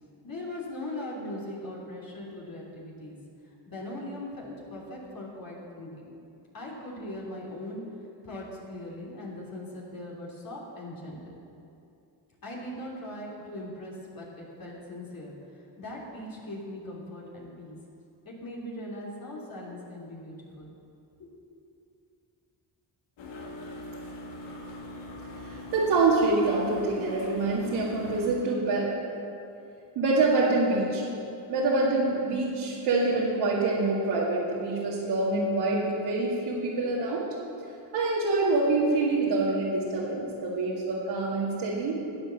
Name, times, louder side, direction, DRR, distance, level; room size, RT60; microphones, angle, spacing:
voice 1, 0.2-3.2 3.4-5.9 6.5-7.8 8.2-11.4 12.4-17.8 18.3-20.7 21.2-21.5, left 1 dB, 50° left, -4 dB, 3.4 m, -40 dB
sound 1, 23.2-28.3, left 1 dB, 85° left, 1.9 m, -41 dB
voice 2, 25.4-28.9 30.0-31.0 31.5-37.3 37.9-42.0, right 3 dB, 85° right, -8 dB, 2.3 m, -26 dB
12.0 x 8.4 x 7.1 m, 2.6 s
cardioid pair, 75°, 44 cm